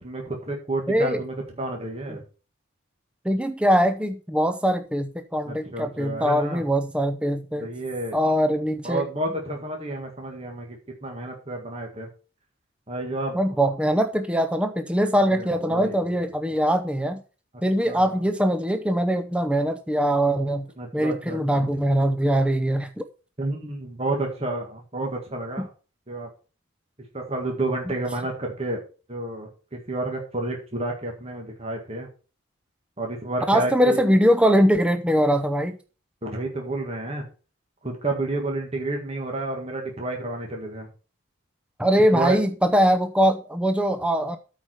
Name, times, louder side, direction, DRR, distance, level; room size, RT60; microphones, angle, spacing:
voice 1, 0.0-2.2 5.5-6.6 7.6-8.2 8.8-12.1 12.9-13.6 15.3-16.3 17.9-18.2 20.8-21.7 23.4-25.7 26.1-26.3 27.1-28.8 29.1-32.1 33.0-34.0 36.2-37.3 37.8-40.9 41.9-42.4, right 2 dB, 30° right, 1 dB, 1.8 m, -30 dB
voice 2, 0.9-1.2 2.1-2.2 3.2-7.7 8.1-9.0 13.3-17.2 17.6-20.7 20.9-23.0 25.6-25.7 33.5-35.8 41.8-44.4, equal, 5° right, 8 dB, 0.6 m, -22 dB
8.6 x 4.9 x 6.2 m, 0.35 s
head